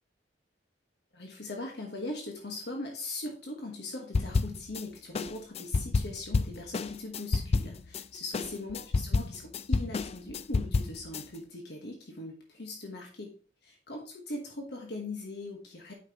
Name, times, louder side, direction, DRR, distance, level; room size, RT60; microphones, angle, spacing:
voice 1, 1.1-13.3 13.6-15.9, left 2 dB, 65° left, 1 dB, 1.3 m, -40 dB
sound 1, 4.1-4.8 5.1-8.0 8.3-11.2, left 3 dB, 35° left, 0.3 m, -29 dB
8.4 x 5.8 x 2.9 m, 0.42 s
head